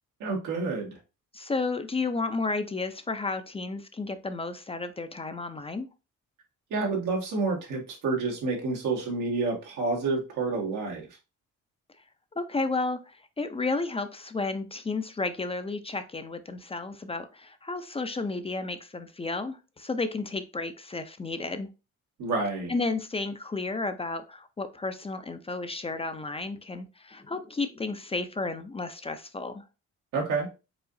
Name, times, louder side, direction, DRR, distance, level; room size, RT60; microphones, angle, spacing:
voice 1, 0.2-1.0 6.7-11.1 22.2-22.7 30.1-30.5, right 3 dB, 85° right, 0 dB, 1.8 m, -29 dB
voice 2, 1.3-5.9 12.4-21.7 22.7-29.6, left 3 dB, 20° left, 9 dB, 0.5 m, -32 dB
4.9 x 3.7 x 2.6 m, 0.30 s
cardioid pair, 90°, 30 cm